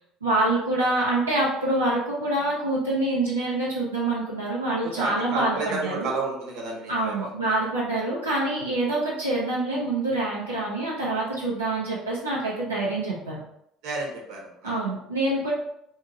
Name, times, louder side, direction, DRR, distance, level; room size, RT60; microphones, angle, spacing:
voice 1, 0.2-6.1 6.9-13.4 14.6-15.5, right 2 dB, 90° right, -7 dB, 0.6 m, -26 dB
voice 2, 4.8-7.3 13.8-14.8, right 3 dB, 60° right, -1 dB, 0.9 m, -31 dB
2.8 x 2.7 x 3.6 m, 0.75 s
figure-of-eight pair, 60°, 0 cm